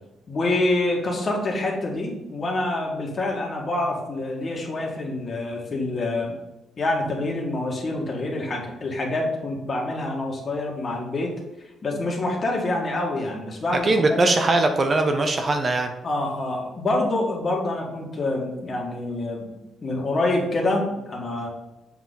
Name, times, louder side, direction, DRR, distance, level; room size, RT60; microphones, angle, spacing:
voice 1, 0.3-6.3 6.8-11.3 11.8-14.2 16.0-19.5 19.8-21.5, left 2 dB, 40° left, -1 dB, 1.8 m, -26 dB
voice 2, 13.8-15.9, right 2 dB, 35° right, 6 dB, 0.6 m, -20 dB
7.1 x 3.9 x 3.9 m, 0.96 s
cardioid pair, 90°, 0 cm